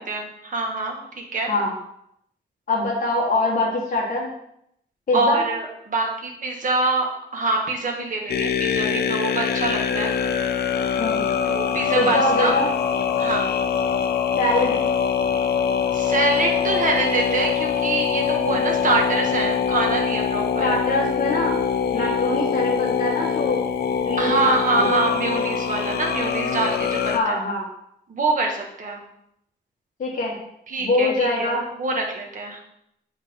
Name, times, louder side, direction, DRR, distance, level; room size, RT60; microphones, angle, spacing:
voice 1, 0.1-1.5 5.1-7.1 7.3-10.2 11.4-12.5 13.2-13.5 15.9-20.7 21.9-22.2 24.2-27.4 28.1-29.0 30.7-31.5 31.8-32.6, right 3 dB, 50° right, 1 dB, 1.6 m, -25 dB
voice 2, 2.7-4.3 5.1-5.4 11.0-11.3 11.9-12.7 14.4-14.8 20.6-21.5 21.9-23.7 24.1-24.9 27.1-27.6 30.0-30.4 30.8-31.6, left 2 dB, 50° left, -4 dB, 1.5 m, -23 dB
sound 1, 8.3-27.2, left 7 dB, 65° left, 0.5 m, -23 dB
7.3 x 5.8 x 3.7 m, 0.75 s
wide cardioid pair, 140°, 18 cm